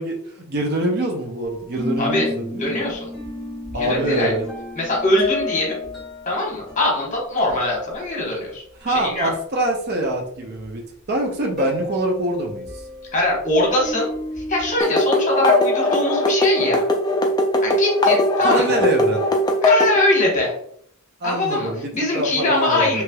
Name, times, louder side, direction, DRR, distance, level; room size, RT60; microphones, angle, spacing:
voice 1, 0.0-2.7 3.7-4.4 8.8-10.8 11.1-12.9 18.4-19.2 21.2-23.0, right 1 dB, 45° right, 1 dB, 0.6 m, -24 dB
sound 1, 1.4-8.9 9.3-9.4 10.6-10.7 11.6-14.7, left 2 dB, ahead, 1.3 m, -33 dB
voice 2, 2.0-2.3 2.6-3.1 3.8-4.3 4.8-5.8 6.3-9.3 13.1-14.1 14.5-16.8 17.6-18.7 19.6-20.5 21.2-23.0, left 2 dB, 35° left, -2 dB, 1.0 m, -22 dB
sound 2, 14.8-20.0, left 1 dB, 20° left, 0.3 m, -19 dB
3.1 x 2.9 x 2.2 m, 0.65 s
head